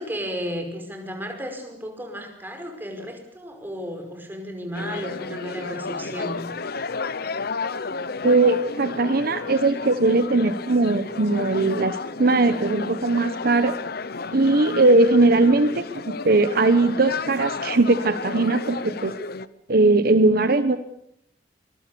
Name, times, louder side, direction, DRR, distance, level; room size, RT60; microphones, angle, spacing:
voice 1, 0.0-6.5, equal, 10° right, 4 dB, 5.1 m, -33 dB
sound 1, 4.7-19.5, left 4 dB, 60° left, 0.9 m, -32 dB
voice 2, 8.2-13.8 14.3-19.1 19.7-20.8, right 2 dB, 55° right, 10 dB, 1.0 m, -19 dB
25.0 x 21.5 x 7.0 m, 0.76 s
head